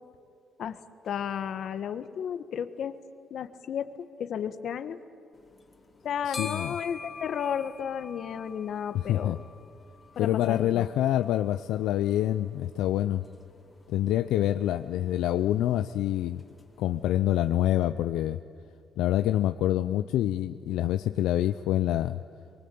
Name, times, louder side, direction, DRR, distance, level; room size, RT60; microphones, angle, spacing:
voice 1, 1.0-3.0 3.3-3.9 4.2-5.0 6.0-9.4 10.1-10.8, left 8 dB, 65° left, 11 dB, 1.5 m, -33 dB
sound 1, 5.3-17.9, left 4 dB, 25° left, 2.6 m, -47 dB
voice 2, 6.2-6.8 8.9-9.4 10.2-13.2 13.9-16.4 16.8-18.4 19.0-22.2, left 13 dB, 90° left, 10 dB, 0.6 m, -26 dB
23.5 x 23.5 x 8.6 m, 2.6 s
cardioid pair, 90°, 0 cm